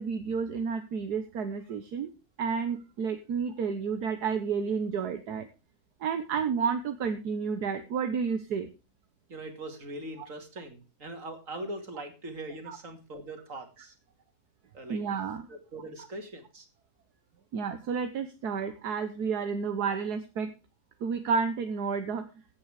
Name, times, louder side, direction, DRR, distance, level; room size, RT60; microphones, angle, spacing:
voice 1, 0.0-2.1 2.4-5.5 6.0-8.7 12.7-12.8 14.9-15.5 17.5-20.5 21.0-22.2, right 6 dB, 75° right, 8 dB, 1.7 m, -31 dB
voice 2, 9.3-14.0 14.7-15.0 15.5-16.7, right 1 dB, 50° right, 6 dB, 3.0 m, -41 dB
16.0 x 8.7 x 4.9 m, 0.30 s
omnidirectional pair, 1.7 m